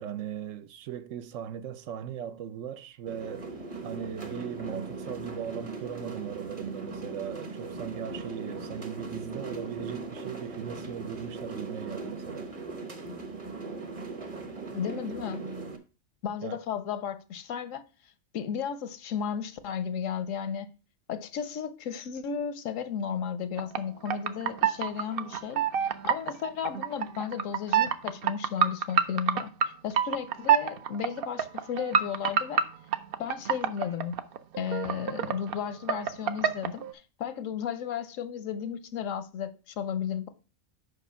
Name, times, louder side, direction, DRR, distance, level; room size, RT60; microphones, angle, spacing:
voice 1, 0.0-3.5 3.8-12.5 16.4-16.6, right 9 dB, 80° right, 1.0 m, -38 dB
sound 1, 3.1-15.8, right 3 dB, 30° right, 0.9 m, -39 dB
voice 2, 14.7-15.4 16.2-17.8 18.3-20.7 21.1-32.6 33.2-34.2 34.6-36.8 37.2-40.3, left 8 dB, 85° left, 1.1 m, -34 dB
sound 2, 23.6-23.8 24.1-29.7 29.9-35.6 35.9-36.9, right 8 dB, 60° right, 0.7 m, -27 dB
5.3 x 5.0 x 5.6 m
omnidirectional pair, 1.3 m